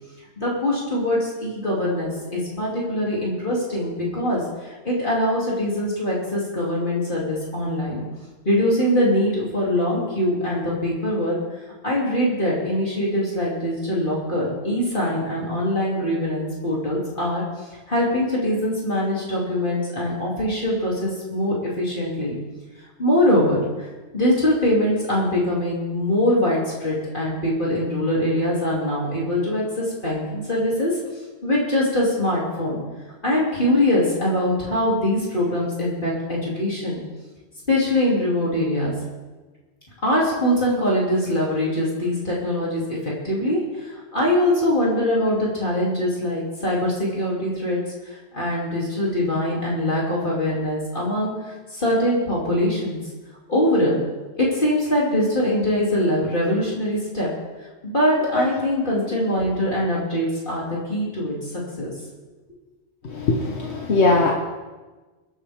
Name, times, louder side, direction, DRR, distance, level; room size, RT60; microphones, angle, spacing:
voice 1, 0.4-8.0 8.4-11.4 11.8-17.4 17.9-22.3 23.0-23.9 24.1-30.9 31.4-32.8 33.2-37.0 37.7-38.9 40.0-47.8 48.0-53.0 53.5-54.0 54.4-57.3 57.8-61.4 61.8-61.9, left 1 dB, 50° left, -5 dB, 3.1 m, -23 dB
voice 2, 63.1-64.3, left 2 dB, 75° left, 1 dB, 1.4 m, -20 dB
23.0 x 9.8 x 3.6 m, 1.2 s
omnidirectional pair, 1.1 m